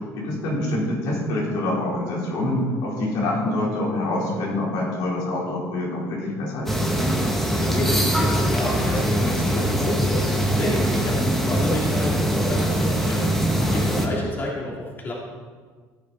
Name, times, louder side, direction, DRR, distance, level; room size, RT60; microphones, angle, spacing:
voice 1, 0.1-6.8 13.6-13.9, left 1 dB, 80° left, -4 dB, 4.3 m, -26 dB
Siena Morning, 6.7-14.1, right 1 dB, 5° left, 1.7 m, -22 dB
voice 2, 7.6-15.1, left 1 dB, 30° left, -4 dB, 3.2 m, -30 dB
15.0 x 9.9 x 4.3 m, 1.5 s
cardioid pair, 125°, 7 cm